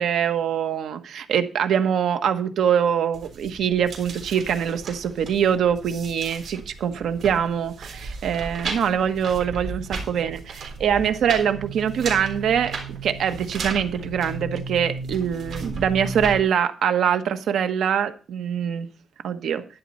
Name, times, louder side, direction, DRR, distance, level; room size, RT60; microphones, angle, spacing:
voice 1, 0.0-12.8 13.0-18.9 19.2-19.6, right 8 dB, 75° right, 1.3 m, -23 dB
sound 1, 3.1-16.4, right 4 dB, 60° right, 3.8 m, -35 dB
12.0 x 10.5 x 4.2 m
wide cardioid pair, 150°, 0 cm